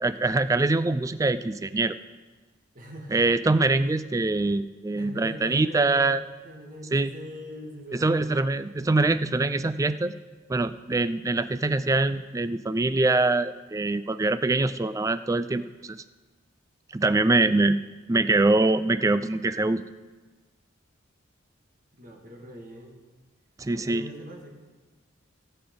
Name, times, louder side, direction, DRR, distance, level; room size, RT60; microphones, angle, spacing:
voice 1, 0.0-2.0 3.1-6.2 6.9-7.1 7.9-10.1 10.5-16.0 16.9-17.8 18.1-19.8 23.6-24.1, right 2 dB, 15° right, 14 dB, 0.3 m, -24 dB
voice 2, 2.7-3.2 5.0-8.3 21.9-23.0 23.7-24.5, equal, 40° right, 1 dB, 1.8 m, -42 dB
18.0 x 7.7 x 3.8 m, 1.3 s
head